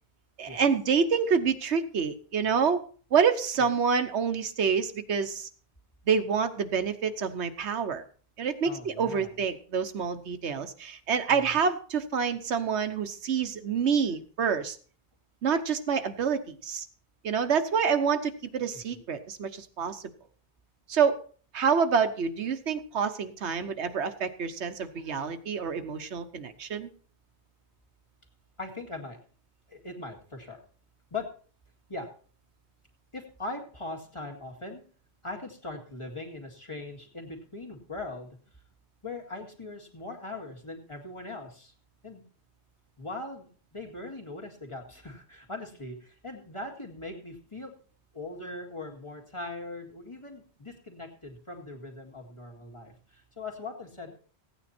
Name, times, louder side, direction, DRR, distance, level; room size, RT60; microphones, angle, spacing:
voice 1, 0.4-2.8 3.1-5.5 6.1-8.0 8.4-14.8 15.4-16.9 17.2-20.0 20.9-21.2 21.5-26.9, right 6 dB, 85° right, 9 dB, 1.3 m, -27 dB
voice 2, 8.6-9.3 11.3-11.6 18.7-19.2 28.6-29.2 29.7-30.6 31.1-31.3 31.9-32.1 33.1-34.8 35.2-38.4 39.0-41.7 42.0-42.2 43.0-47.7 48.1-54.2, left 2 dB, 25° left, 1 dB, 2.1 m, -40 dB
15.5 x 9.2 x 4.3 m, 0.42 s
omnidirectional pair, 1.1 m